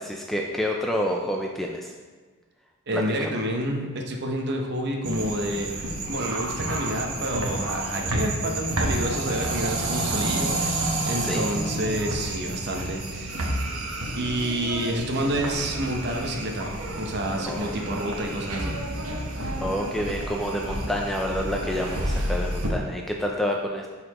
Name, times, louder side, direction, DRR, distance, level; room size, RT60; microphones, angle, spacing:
voice 1, 0.0-1.9 2.9-3.0 11.2-11.5 17.5-17.7 19.6-23.9, equal, ahead, 0 dB, 0.3 m, -28 dB
voice 2, 2.9-5.7 6.1-13.4 14.2-18.8, right 1 dB, 50° right, 2 dB, 0.8 m, -29 dB
sound 1, 5.0-22.7, right 1 dB, 75° right, 1.1 m, -30 dB
11.0 x 4.2 x 3.0 m, 1.4 s
head